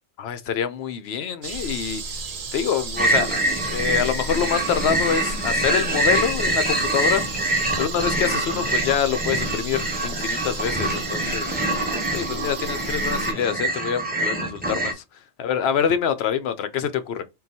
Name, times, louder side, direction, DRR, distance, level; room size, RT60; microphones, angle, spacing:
voice 1, 0.2-2.0 2.5-3.4 3.7-7.2 7.8-11.5 12.1-15.0 15.4-17.2, left 8 dB, 70° left, 0.8 m, -25 dB
sound 1, 1.4-13.3, right 3 dB, 55° right, 0.8 m, -33 dB
sound 2, 3.0-14.9, right 2 dB, 10° right, 0.6 m, -25 dB
3.8 x 2.3 x 4.1 m
omnidirectional pair, 1.1 m